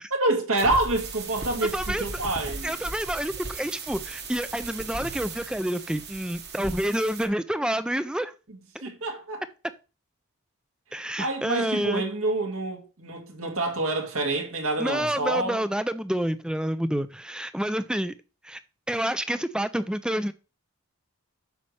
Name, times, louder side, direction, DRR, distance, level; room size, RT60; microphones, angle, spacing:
voice 1, 0.1-2.7 8.5-9.4 11.2-15.6, right 2 dB, 75° right, 2.0 m, -27 dB
sound 1, 0.6-7.3, right 3 dB, 50° right, 1.6 m, -37 dB
voice 2, 1.7-2.0 2.6-8.3 10.9-12.0 14.8-18.2 18.4-18.6 18.9-20.3, right 1 dB, 5° right, 0.4 m, -28 dB
9.4 x 6.7 x 3.3 m
head